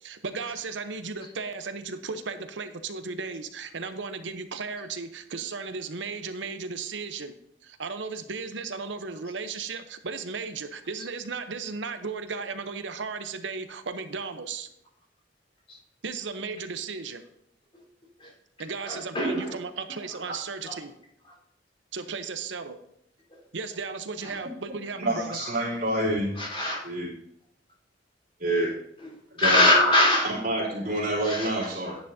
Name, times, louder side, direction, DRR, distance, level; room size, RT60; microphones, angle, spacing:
voice 1, 0.0-7.3 7.6-14.7 16.0-17.2 18.6-20.9 21.9-22.8 23.5-25.4, right 4 dB, 90° right, 10 dB, 0.8 m, -35 dB
voice 2, 18.9-19.5 20.7-20.8 26.4-26.8 29.4-30.3 31.2-31.5 31.8-31.9, left 2 dB, 30° left, -4 dB, 4.0 m, -22 dB
voice 3, 25.0-26.3 26.8-27.1 28.4-28.7 29.3-29.6 30.2-32.0, right 1 dB, 55° right, -6 dB, 3.4 m, -27 dB
10.0 x 10.0 x 2.7 m, 0.73 s
head